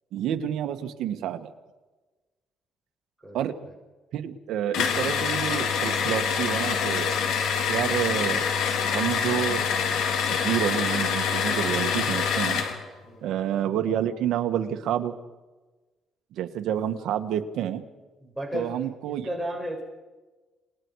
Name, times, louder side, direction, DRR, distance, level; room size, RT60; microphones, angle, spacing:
voice 1, 0.1-1.5 3.3-3.6 4.1-7.1 7.7-8.5 8.8-10.0 10.3-12.6 13.2-15.1 16.3-17.8 18.5-19.3, right 10 dB, 85° right, 8 dB, 1.7 m, -29 dB
sound 1, 4.7-12.8, left 6 dB, 85° left, 3.5 m, -25 dB
voice 2, 13.0-13.4 18.2-19.8, equal, ahead, -1 dB, 7.3 m, -34 dB
29.5 x 20.5 x 4.9 m, 1.2 s
cardioid pair, 90°, 0 cm